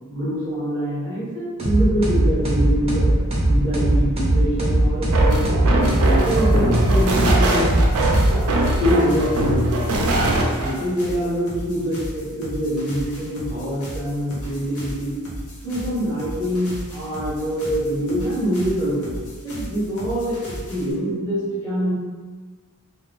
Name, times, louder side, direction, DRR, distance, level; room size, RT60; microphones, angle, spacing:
voice 1, 0.1-3.1 3.4-5.4 5.7-7.9 8.8-10.1 10.6-15.1 15.6-19.1 19.4-20.4 20.7-21.9, equal, 10° left, -12 dB, 1.3 m, -24 dB
sound 1, 1.6-8.8, right 1 dB, 25° right, 0.5 m, -20 dB
sound 2, 5.1-10.7, right 1 dB, 80° right, 0.5 m, -21 dB
sound 3, 5.8-20.9, equal, 85° left, 0.8 m, -36 dB
2.6 x 2.2 x 3.1 m, 1.4 s
head